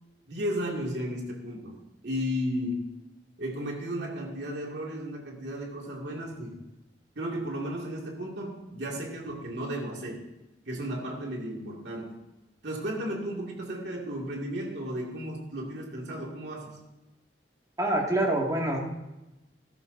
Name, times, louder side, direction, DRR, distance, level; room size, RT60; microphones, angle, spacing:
voice 1, 0.3-1.8 2.0-2.9 3.4-6.6 7.2-10.3 10.7-12.2 12.6-16.8, equal, 75° right, -1 dB, 2.3 m, -34 dB
voice 2, 17.8-18.8, right 1 dB, 20° right, -1 dB, 2.1 m, -26 dB
14.5 x 12.0 x 2.7 m, 0.97 s
head